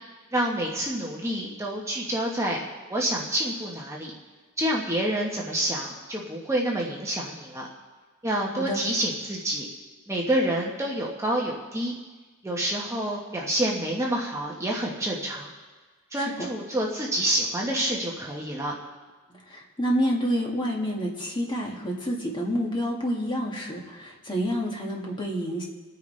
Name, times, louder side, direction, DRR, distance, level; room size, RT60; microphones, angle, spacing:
voice 1, 0.3-2.6 2.9-4.1 4.6-7.7 8.2-9.7 10.1-11.9 12.4-15.5 16.1-18.7, right 1 dB, 15° right, -2 dB, 1.2 m, -28 dB
voice 2, 16.2-16.5 19.5-25.7, equal, 20° left, -2 dB, 1.9 m, -28 dB
26.5 x 9.2 x 3.3 m, 1.3 s
head